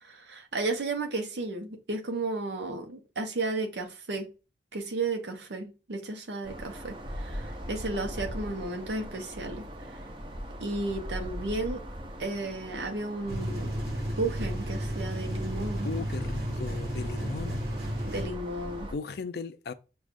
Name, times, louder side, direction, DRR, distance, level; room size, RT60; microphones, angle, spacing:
voice 1, 0.0-4.3 4.7-9.6 10.6-11.8 12.2-13.7 14.2-15.9 18.0-18.9, right 2 dB, 80° right, 0.8 m, -33 dB
sound 1, 6.4-18.9, equal, 30° right, 0.6 m, -40 dB
sound 2, 13.3-18.3, equal, 60° right, 1.5 m, -33 dB
voice 2, 15.8-17.7 18.0-18.1 18.9-19.7, left 4 dB, 60° left, 0.4 m, -37 dB
6.1 x 2.3 x 2.5 m
head